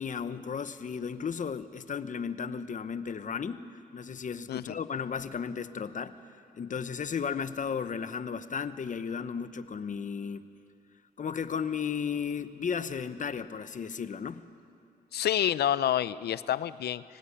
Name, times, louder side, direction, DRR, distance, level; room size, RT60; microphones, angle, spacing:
voice 1, 0.0-6.2 6.5-10.5 11.2-14.4, left 6 dB, 50° left, 12 dB, 1.0 m, -34 dB
voice 2, 15.1-17.0, left 11 dB, 75° left, 17 dB, 0.6 m, -28 dB
24.0 x 16.5 x 10.0 m, 2.5 s
cardioid pair, 80°, 17 cm